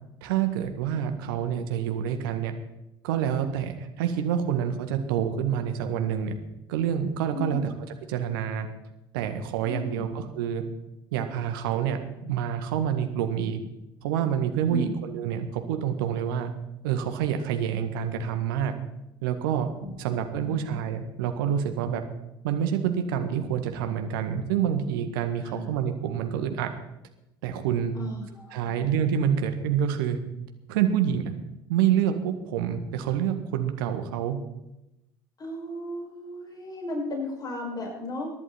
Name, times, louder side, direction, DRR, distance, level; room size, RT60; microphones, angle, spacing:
voice 1, 0.2-2.5 3.0-6.3 6.7-7.6 8.1-8.7 9.1-10.6 11.1-13.6 14.0-16.5 16.8-18.8 19.2-19.7 20.0-22.0 22.4-26.7 27.4-27.9 28.5-30.2 30.7-31.3 31.7-34.4, right 9 dB, 65° right, 7 dB, 1.7 m, -27 dB
voice 2, 7.3-7.7 9.6-10.1 14.7-15.0 19.8-20.8 25.4-25.7 27.9-28.8 35.4-38.3, left 2 dB, 30° left, -1 dB, 6.2 m, -36 dB
23.0 x 11.0 x 4.3 m, 0.92 s
figure-of-eight pair, 60°, 12 cm